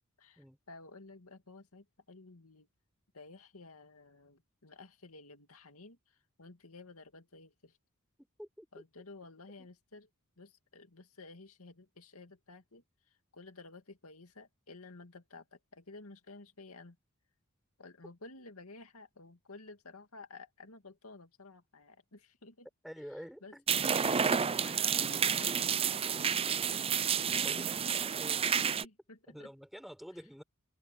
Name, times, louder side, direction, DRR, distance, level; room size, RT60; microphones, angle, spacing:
voice 1, 0.2-2.7 3.1-7.8 8.7-10.1 10.4-17.0 17.8-22.7 23.1-23.5 24.6-26.3 28.5-29.5, left 3 dB, 80° left, 2.3 m, -53 dB
voice 2, 22.8-23.6 27.2-28.6 29.3-30.4, equal, ahead, 5.4 m, -48 dB
sound 1, 23.7-28.8, right 7 dB, 25° right, 0.5 m, -30 dB
head